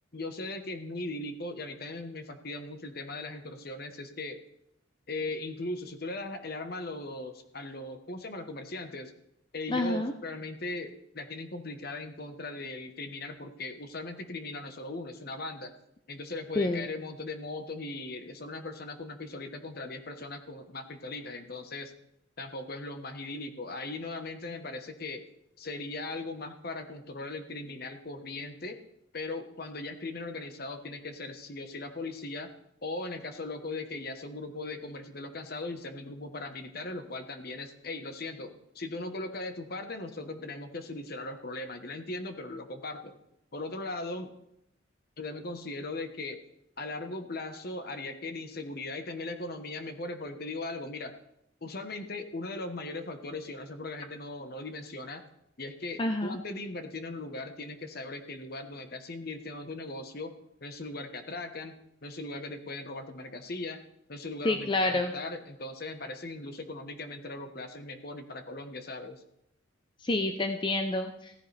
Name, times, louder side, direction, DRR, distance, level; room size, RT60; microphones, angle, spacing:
voice 1, 0.1-4.4 5.1-9.1 9.5-15.7 16.1-21.9 22.4-25.2 25.6-28.8 29.1-32.5 32.8-43.2 43.5-44.3 45.2-46.4 46.8-51.1 51.6-55.2 55.6-60.3 60.6-61.7 62.0-63.8 64.1-69.2, left 2 dB, 50° left, 7 dB, 1.2 m, -39 dB
voice 2, 9.7-10.1 16.5-16.9 56.0-56.4 64.4-65.1 70.0-71.3, left 2 dB, 25° left, 6 dB, 0.6 m, -28 dB
15.5 x 14.5 x 3.4 m, 0.80 s
head